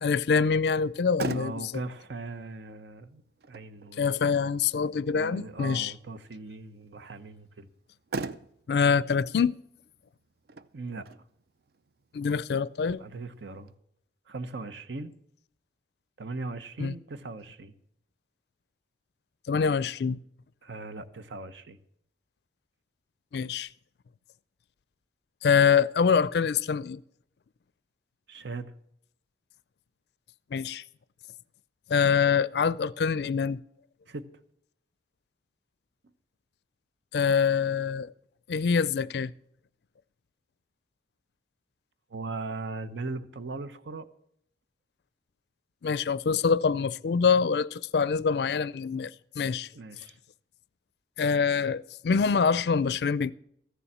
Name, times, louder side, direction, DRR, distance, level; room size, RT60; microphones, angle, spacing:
voice 1, 0.0-1.7 4.0-5.9 8.7-9.6 12.1-13.0 16.8-17.0 19.5-20.2 23.3-23.7 25.4-27.0 30.5-30.8 31.9-33.6 37.1-38.1 38.5-39.3 45.8-49.1 49.4-49.7 51.2-53.3, left 6 dB, 65° left, 0.4 m, -25 dB
Motor vehicle (road), 0.8-13.7, right 3 dB, 60° right, 0.5 m, -43 dB
voice 2, 1.3-3.2 3.5-4.4 5.1-7.7 10.7-11.1 13.0-13.7 14.3-15.1 16.2-17.7 20.6-21.8 28.3-28.7 34.1-34.2 42.1-44.1 49.7-50.2, right 3 dB, 80° right, 0.9 m, -39 dB
14.5 x 7.0 x 7.3 m
head